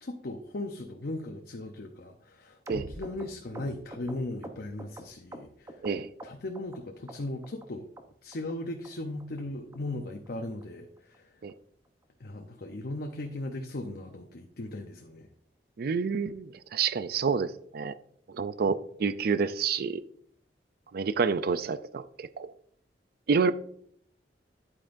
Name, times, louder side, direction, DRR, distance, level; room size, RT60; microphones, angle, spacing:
voice 1, 0.0-5.9 6.2-7.9 8.2-11.4 12.2-15.3, left 2 dB, 60° left, 4 dB, 0.7 m, -38 dB
sound 1, 2.7-5.9 6.2-6.8 7.1-7.7 8.0-8.1 8.3-8.5 8.8-8.9 9.2-9.4 9.7-9.8 10.1-10.3 10.6-10.7 11.0-11.2 11.5-11.6 11.9-12.0 12.4-12.5, right 1 dB, 20° right, 0.8 m, -45 dB
voice 2, 15.8-17.9 18.3-20.0 20.9-22.5 23.3-23.5, right 5 dB, 60° right, 13 dB, 0.4 m, -28 dB
9.8 x 8.7 x 2.6 m, 0.63 s
head